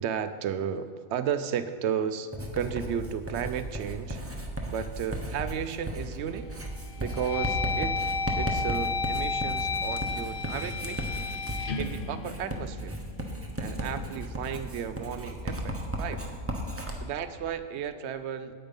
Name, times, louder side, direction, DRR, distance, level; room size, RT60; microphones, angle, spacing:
voice 1, 0.0-4.2 4.7-6.5 7.0-8.0 8.4-11.0 11.8-13.0 13.6-16.2 17.0-18.5, right 8 dB, 65° right, 11 dB, 0.7 m, -33 dB
Writing, 2.3-17.0, equal, 10° right, 0.8 m, -35 dB
sound 1, 6.0-6.4 6.9-13.1, left 4 dB, 65° left, 0.5 m, -32 dB
8.8 x 8.8 x 5.4 m, 2.1 s
omnidirectional pair, 1.5 m